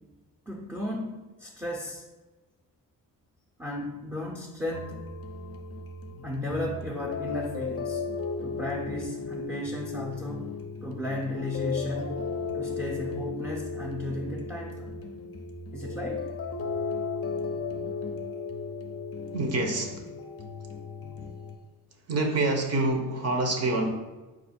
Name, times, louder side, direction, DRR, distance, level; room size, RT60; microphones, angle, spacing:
voice 1, 0.5-2.0 3.6-5.0 6.2-8.0 8.4-10.5 10.8-12.2 12.5-14.9 15.7-16.3, left 1 dB, 5° right, -3 dB, 0.5 m, -34 dB
sound 1, 4.7-21.6, left 4 dB, 40° left, 0.5 m, -35 dB
voice 2, 19.3-20.1 22.1-23.9, right 2 dB, 45° right, 3 dB, 0.7 m, -26 dB
4.3 x 2.4 x 4.2 m, 1.1 s
cardioid pair, 95°, 35 cm